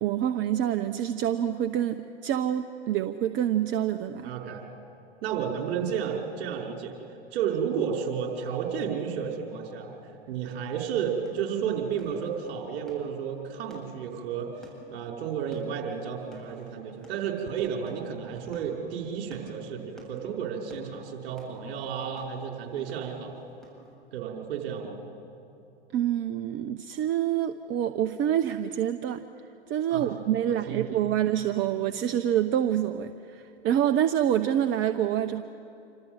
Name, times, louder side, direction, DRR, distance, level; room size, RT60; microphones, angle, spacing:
voice 1, 0.0-4.3 25.9-29.2 29.7-35.4, right 10 dB, 35° right, 9 dB, 1.0 m, -27 dB
voice 2, 4.2-4.6 5.2-7.0 7.3-9.9 10.3-14.5 14.9-23.3 24.1-25.0 29.9-30.2 30.5-31.0, right 7 dB, 55° right, 1 dB, 5.4 m, -32 dB
sound 1, 11.2-23.9, equal, ahead, 7.9 m, -53 dB
27.5 x 26.0 x 8.1 m, 2.8 s
hypercardioid pair, 100°, 34 cm